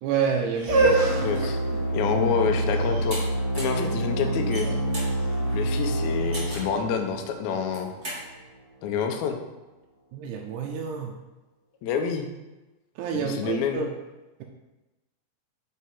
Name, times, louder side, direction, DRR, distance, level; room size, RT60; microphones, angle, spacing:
voice 1, 0.0-1.0 1.7-1.8 10.1-11.2 13.0-13.9, right 6 dB, 80° right, 1 dB, 1.9 m, -28 dB
sound 1, 0.5-6.5, right 2 dB, 60° right, 1.5 m, -28 dB
sound 2, 0.7-8.2, right 1 dB, 55° left, 1.9 m, -28 dB
voice 2, 1.2-1.6 1.9-3.2 3.6-4.7 5.5-7.9 8.8-9.4 11.8-12.3 13.1-13.8, left 7 dB, 75° left, 4 dB, 1.7 m, -27 dB
sound 3, 3.1-3.2 3.5-3.8 4.4-5.1 6.3-6.8 7.6-8.2, right 1 dB, 40° right, 1.0 m, -36 dB
5.0 x 4.6 x 4.3 m, 1.1 s
omnidirectional pair, 3.8 m